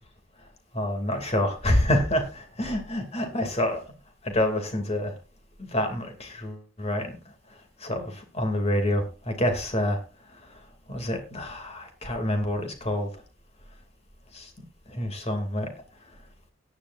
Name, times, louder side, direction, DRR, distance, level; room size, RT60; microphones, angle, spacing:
voice 1, 0.7-2.3 2.6-3.8 4.2-5.2 5.6-7.2 7.8-10.0 10.3-13.2 14.3-14.5 14.9-15.7, left 1 dB, 30° left, 5 dB, 2.6 m, -27 dB
17.0 x 10.5 x 2.6 m, 0.31 s
head